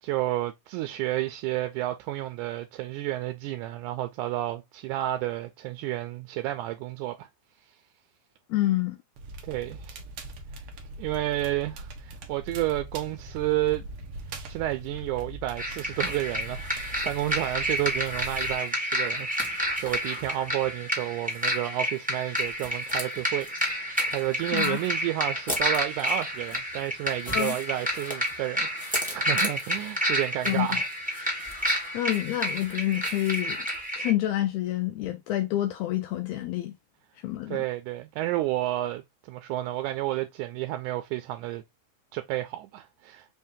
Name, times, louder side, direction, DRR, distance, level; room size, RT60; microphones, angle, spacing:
voice 1, 0.0-7.3 9.4-10.0 11.0-13.9 14.5-19.3 19.6-28.7 29.1-30.9 37.5-41.6 42.1-43.3, right 15 dB, 85° right, 2.0 m, -31 dB
voice 2, 8.5-9.0 24.5-24.8 27.3-27.6 30.4-30.8 31.9-33.6 34.0-36.7 37.2-37.6, left 14 dB, 85° left, 1.5 m, -28 dB
Crackle, 9.2-18.5, right 2 dB, 65° right, 1.5 m, -41 dB
sound 1, 15.6-34.1, equal, 10° right, 0.3 m, -30 dB
5.0 x 2.7 x 3.5 m
omnidirectional pair, 3.5 m